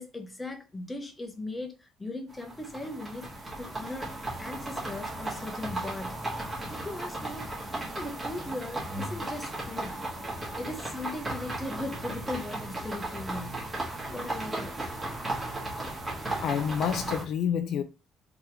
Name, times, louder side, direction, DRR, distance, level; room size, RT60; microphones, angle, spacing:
voice 1, 0.0-3.3 3.6-4.1 4.4-7.5 7.7-10.0 10.5-13.6 14.1-14.8, left 2 dB, 10° left, 0.8 m, -38 dB
sound 1, 2.3-17.2, right 2 dB, 15° right, 1.4 m, -36 dB
voice 2, 16.4-17.8, left 8 dB, 55° left, 0.5 m, -28 dB
3.5 x 3.5 x 3.0 m
cardioid pair, 170°, 0 cm